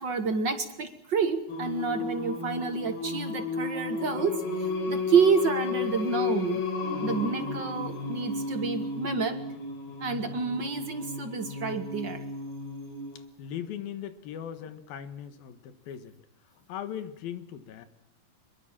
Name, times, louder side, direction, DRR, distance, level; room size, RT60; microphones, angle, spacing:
voice 1, 0.0-6.6 7.0-9.4 10.0-12.3, right 5 dB, 55° right, 8 dB, 1.3 m, -28 dB
Singing, 1.5-13.2, left 4 dB, 90° left, 5.2 m, -33 dB
voice 2, 13.4-16.2 16.6-17.9, left 9 dB, 75° left, 11 dB, 3.2 m, -39 dB
24.5 x 22.5 x 7.5 m, 0.81 s
omnidirectional pair, 4.4 m